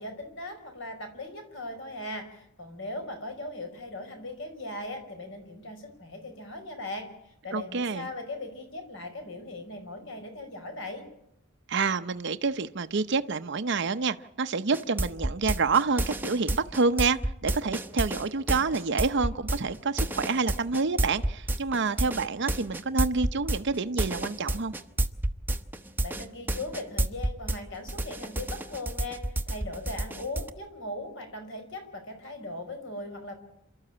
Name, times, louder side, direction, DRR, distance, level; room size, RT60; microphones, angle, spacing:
voice 1, 0.0-11.0 26.0-33.3, left 2 dB, 65° left, 5 dB, 5.1 m, -39 dB
voice 2, 7.5-8.1 11.7-24.7, right 4 dB, 60° right, 9 dB, 0.7 m, -28 dB
sound 1, 14.7-27.6 27.9-30.5, right 1 dB, 10° right, 0.9 m, -29 dB
28.5 x 13.0 x 8.7 m, 0.81 s
head